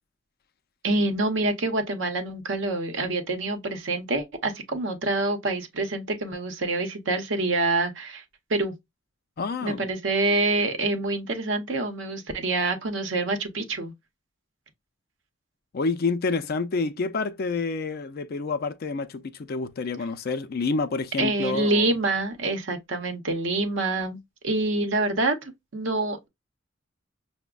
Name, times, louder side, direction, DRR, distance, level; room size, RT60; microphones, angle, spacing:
voice 1, 0.8-8.2 8.5-8.7 9.6-13.9 21.2-24.2 24.4-26.3, right 2 dB, 70° right, 0.8 m, -26 dB
voice 2, 9.4-9.9 15.7-21.9, left 4 dB, 50° left, 0.4 m, -28 dB
5.9 x 2.1 x 2.3 m
head